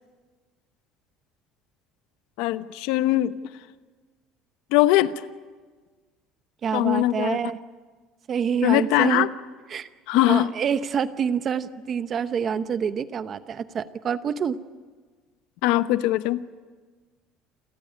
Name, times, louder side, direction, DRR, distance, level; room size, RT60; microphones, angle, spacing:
voice 1, 2.4-3.3 4.7-5.3 6.7-7.4 8.6-9.3 10.1-10.5 15.6-16.4, left 15 dB, 75° left, 13 dB, 0.9 m, -21 dB
voice 2, 6.6-7.6 8.3-9.3 9.7-9.9 10.2-14.6, right 7 dB, 30° right, 12 dB, 0.8 m, -27 dB
29.5 x 14.0 x 9.8 m, 1.4 s
cardioid pair, 175°, 0 cm